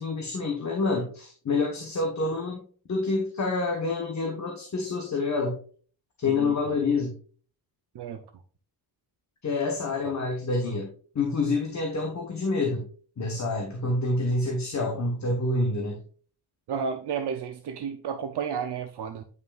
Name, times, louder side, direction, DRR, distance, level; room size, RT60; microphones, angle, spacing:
voice 1, 0.0-2.6 2.9-5.6 6.2-7.1 9.4-10.9 11.1-12.9 13.2-16.0, left 3 dB, 40° left, 1 dB, 1.2 m, -27 dB
voice 2, 6.2-6.8 7.9-8.2 10.0-10.1 16.7-19.2, right 7 dB, 70° right, 6 dB, 0.7 m, -32 dB
9.4 x 5.7 x 2.4 m, 0.42 s
wide cardioid pair, 175°, 41 cm